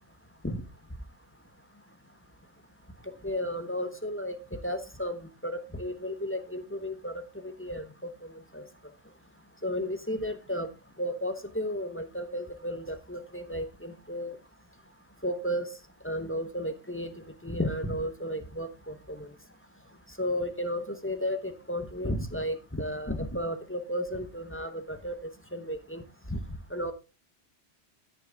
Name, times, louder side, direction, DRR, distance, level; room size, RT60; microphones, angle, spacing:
voice 1, 3.2-4.4 4.6-5.2 5.4-7.1 7.4-7.8 8.5-8.6 9.6-10.7 11.0-14.3 15.2-15.7 16.0-17.1 17.4-19.3 20.2-25.2 25.5-26.0 26.3-26.4 26.7-26.9, equal, 15° left, 7 dB, 0.9 m, -33 dB
13.0 x 6.5 x 3.5 m, 0.30 s
omnidirectional pair, 1.1 m